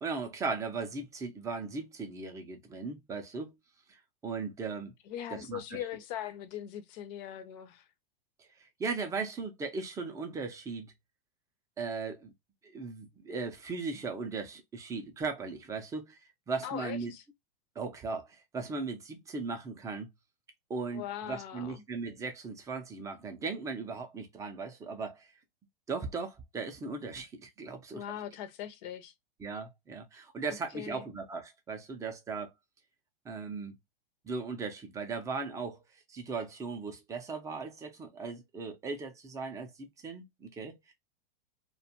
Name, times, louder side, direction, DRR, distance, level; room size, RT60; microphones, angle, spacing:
voice 1, 0.0-3.5 3.9-4.9 5.3-5.8 8.4-10.9 11.8-12.3 12.6-16.2 16.5-17.1 17.8-20.1 20.7-25.3 25.9-28.0 29.4-32.5 33.2-33.8 34.2-35.8 36.1-40.9, right 4 dB, 10° right, 0.4 m, -38 dB
voice 2, 5.1-7.8 16.6-17.2 20.9-21.8 27.9-29.1 30.7-31.0, left 10 dB, 45° left, 0.6 m, -40 dB
2.3 x 2.2 x 2.7 m
hypercardioid pair, 130°, 29 cm